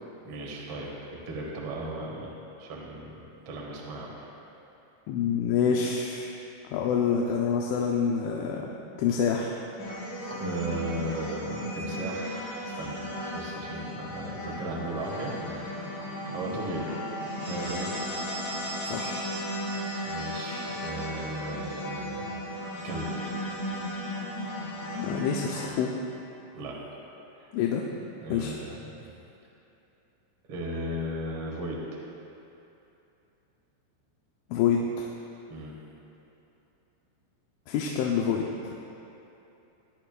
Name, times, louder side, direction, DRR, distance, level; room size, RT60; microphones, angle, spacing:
voice 1, 0.2-2.3 2.6-4.3 10.3-15.8 16.3-17.1 17.4-18.1 19.7-23.3 26.5-26.8 27.3-27.5 28.2-29.1 30.5-32.0 35.5-35.8, right 1 dB, 70° right, -3 dB, 1.3 m, -36 dB
voice 2, 5.1-6.3 6.7-8.7 9.0-9.6 18.8-19.2 24.9-25.9 27.5-27.8 28.3-28.5 34.5-35.1 37.7-38.5, left 7 dB, 85° left, -1 dB, 3.2 m, -27 dB
sound 1, 9.8-25.7, equal, 50° left, 3.9 m, -35 dB
19.5 x 11.0 x 2.4 m, 2.9 s
omnidirectional pair, 5.6 m